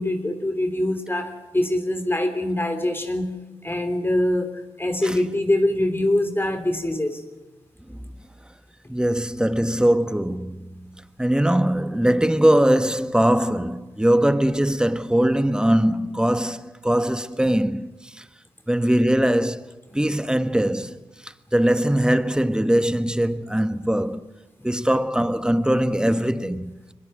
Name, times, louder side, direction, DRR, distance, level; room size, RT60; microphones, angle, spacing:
voice 1, 0.0-3.3 3.6-7.2 24.6-24.7, left 1 dB, 20° left, 3.2 m, -24 dB
voice 2, 8.9-10.7 11.2-18.2 18.7-21.0 21.2-24.2 24.6-26.7, right 1 dB, 10° right, 1.4 m, -21 dB
23.5 x 21.0 x 7.7 m
cardioid pair, 50°, 11 cm